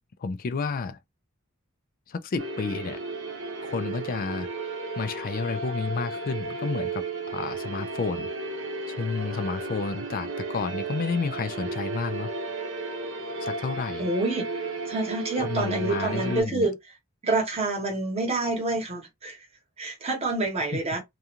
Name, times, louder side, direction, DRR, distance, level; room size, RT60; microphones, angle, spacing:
voice 1, 0.2-1.0 2.1-3.0 3.6-4.5 5.0-12.3 13.4-14.1 15.4-16.7 20.7-20.8, left 4 dB, 40° left, 0.3 m, -31 dB
sound 1, 2.4-16.4, right 3 dB, 60° right, 0.8 m, -34 dB
voice 2, 14.0-14.4 14.9-16.7 17.2-19.4 19.8-21.0, right 2 dB, 30° right, 1.0 m, -27 dB
2.4 x 2.2 x 2.9 m
head